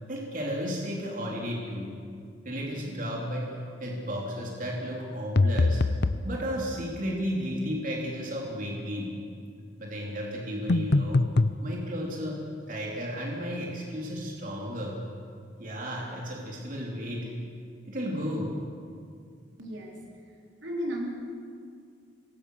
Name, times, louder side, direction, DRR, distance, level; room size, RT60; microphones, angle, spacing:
voice 1, 0.1-1.9 2.4-5.8 6.2-9.1 9.8-11.2 11.6-12.4 12.7-15.0 15.6-17.3 17.9-18.5, equal, 45° right, -2 dB, 3.5 m, -33 dB
sound 1, 5.4-6.3 10.7-11.6, left 2 dB, 60° left, 0.7 m, -23 dB
voice 2, 19.6-20.0 20.6-21.1, equal, 75° right, -1 dB, 4.0 m, -33 dB
25.5 x 22.0 x 6.5 m, 2.3 s
head